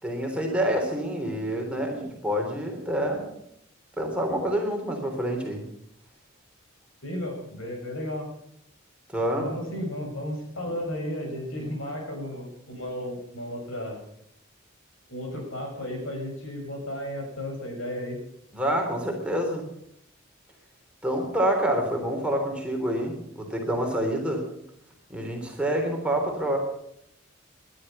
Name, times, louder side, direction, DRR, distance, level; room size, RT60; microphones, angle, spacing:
voice 1, 0.0-3.3 4.0-5.6 9.1-9.5 18.5-19.7 21.0-24.5 25.1-26.6, right 1 dB, 5° right, 1 dB, 3.6 m, -27 dB
voice 2, 7.0-8.3 9.2-14.0 15.1-18.2, left 1 dB, 85° left, 2 dB, 6.6 m, -34 dB
20.0 x 11.5 x 5.6 m, 0.73 s
head